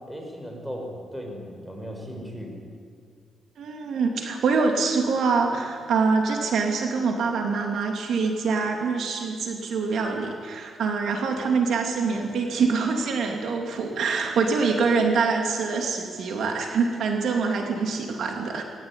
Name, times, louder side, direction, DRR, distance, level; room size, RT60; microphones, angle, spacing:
voice 1, 0.1-2.5, equal, 5° right, 1 dB, 5.7 m, -36 dB
voice 2, 3.6-18.6, right 4 dB, 70° right, 2 dB, 3.0 m, -25 dB
20.0 x 19.5 x 10.0 m, 2.1 s
cardioid pair, 125°, 0 cm